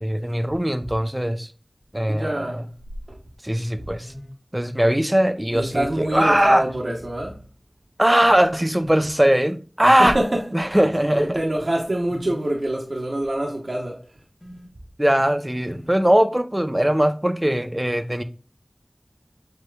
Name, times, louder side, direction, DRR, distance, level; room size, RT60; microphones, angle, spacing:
voice 1, 0.0-1.5 1.9-2.6 3.4-4.1 4.5-6.6 8.0-10.2 10.5-11.4 15.0-18.2, right 1 dB, 20° right, 0.5 m, -20 dB
voice 2, 2.1-2.7 3.1-3.2 5.5-7.4 10.0-10.4 11.0-14.0, right 1 dB, 70° right, 0.9 m, -25 dB
sound 1, 4.0-4.3 6.1-6.8 8.2-9.0 10.5-11.1 12.1-12.3 14.4-14.7 15.6-15.9, equal, 40° left, 1.3 m, -42 dB
7.8 x 3.0 x 2.2 m
wide cardioid pair, 50°, 0 cm